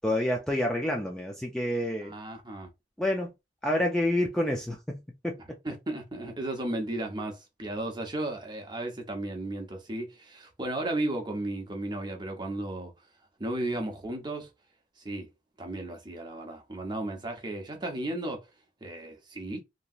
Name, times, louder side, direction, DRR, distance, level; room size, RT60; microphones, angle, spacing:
voice 1, 0.0-2.1 3.0-3.3 3.6-5.4, left 1 dB, 5° left, 0.4 m, -28 dB
voice 2, 2.0-2.7 5.4-12.9 13.4-14.5 15.0-15.3 15.6-18.5 18.8-19.6, right 1 dB, 25° right, 0.8 m, -34 dB
3.0 x 2.7 x 2.4 m
head